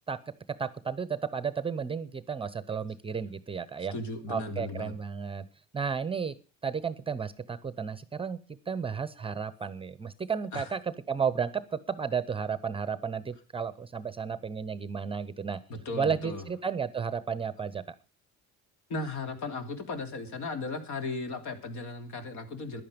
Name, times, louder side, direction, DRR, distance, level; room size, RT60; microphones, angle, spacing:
voice 1, 0.6-3.9 4.3-5.5 5.7-6.4 6.6-8.4 8.7-15.6 15.9-18.0, right 6 dB, 15° right, 16 dB, 0.7 m, -33 dB
voice 2, 3.9-5.0 10.5-10.7 15.7-16.4 18.9-22.8, left 3 dB, 65° left, 7 dB, 3.1 m, -36 dB
15.0 x 11.0 x 5.2 m, 0.34 s
cardioid pair, 150°, 31 cm